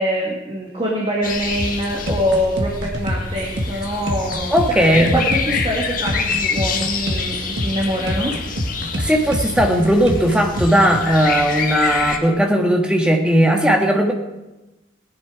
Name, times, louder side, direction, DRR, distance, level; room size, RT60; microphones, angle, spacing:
voice 1, 0.0-4.8 5.1-8.3, equal, 25° right, -2 dB, 2.0 m, -24 dB
sound 1, 1.2-12.2, left 5 dB, 45° left, 1.4 m, -27 dB
sound 2, 1.6-11.0, equal, 60° right, 1.7 m, -26 dB
voice 2, 4.5-5.2 9.0-14.1, equal, 5° right, 2 dB, 1.5 m, -17 dB
18.5 x 10.5 x 5.0 m, 1.0 s
head